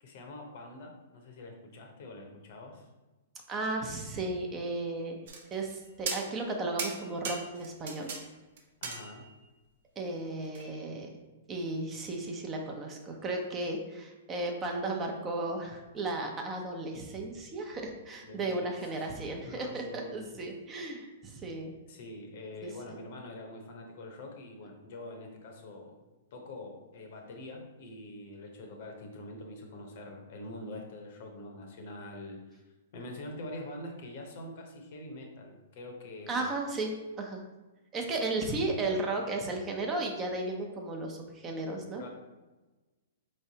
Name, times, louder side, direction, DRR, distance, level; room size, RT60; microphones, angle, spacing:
voice 1, 0.0-2.9 8.8-9.3 18.2-19.1 19.4-20.4 21.9-26.0 26.3-32.6 32.9-36.5 42.0-42.1, left 1 dB, 55° left, 3 dB, 0.9 m, -45 dB
voice 2, 3.5-5.2 5.5-8.1 10.0-11.1 11.5-21.8 22.6-23.0 36.3-37.4 37.9-42.1, right 2 dB, 25° right, 2 dB, 0.7 m, -34 dB
sound 1, 5.3-5.7 6.1-6.5 6.8-8.2 8.6-9.4 10.5-10.7, right 5 dB, 60° right, 0.7 m, -37 dB
4.6 x 3.2 x 2.8 m, 1.2 s
hypercardioid pair, 120°, 0 cm